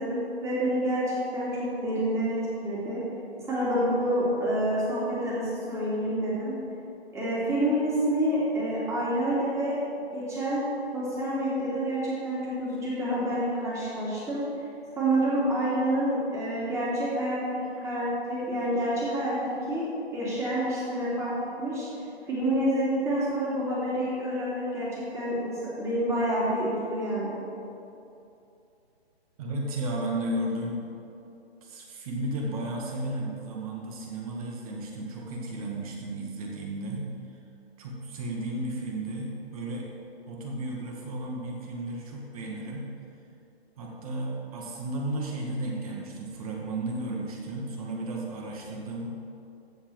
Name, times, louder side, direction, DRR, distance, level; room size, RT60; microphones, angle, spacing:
voice 1, 0.0-3.0 3.5-6.6 7.1-9.8 10.1-10.7 10.9-14.4 15.0-19.8 20.1-21.9 22.3-27.4, right 1 dB, 10° right, -8 dB, 2.7 m, -28 dB
voice 2, 29.4-30.8 31.6-37.1 37.8-39.9 40.3-42.8 43.8-49.1, right 1 dB, 35° right, -1 dB, 1.9 m, -34 dB
14.5 x 4.9 x 7.7 m, 2.7 s
hypercardioid pair, 145°, 33 cm